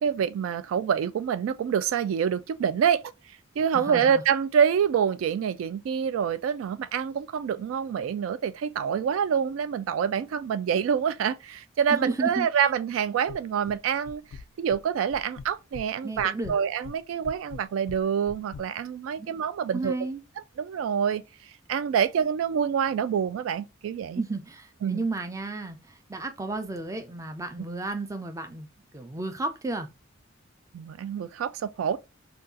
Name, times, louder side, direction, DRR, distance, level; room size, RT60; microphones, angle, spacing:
voice 1, 0.0-3.0 3.6-14.2 14.6-20.0 20.6-21.2 21.7-24.2 24.8-25.0 30.7-32.0, right 7 dB, 80° right, 0.3 m, -26 dB
voice 2, 3.7-4.2 11.9-12.5 16.0-16.5 19.2-19.3 19.7-20.2 24.2-28.7 28.9-29.9, right 2 dB, 15° right, 0.5 m, -33 dB
sound 1, 13.3-13.8 14.1-14.8 15.1-15.9 16.2-18.7, left 5 dB, 85° left, 0.3 m, -42 dB
2.6 x 2.3 x 3.6 m
head